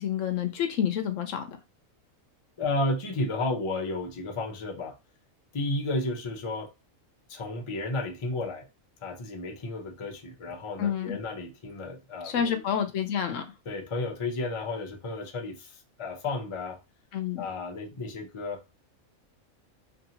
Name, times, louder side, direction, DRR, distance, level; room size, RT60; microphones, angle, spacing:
voice 1, 0.0-1.6 10.8-11.2 12.2-13.4 17.1-17.4, left 8 dB, 70° left, 0.9 m, -28 dB
voice 2, 2.6-5.0 5.5-6.7 7.3-8.7 9.0-12.6 13.7-16.8 17.4-18.8, left 2 dB, 40° left, 0.5 m, -32 dB
2.8 x 2.7 x 2.7 m
omnidirectional pair, 1.4 m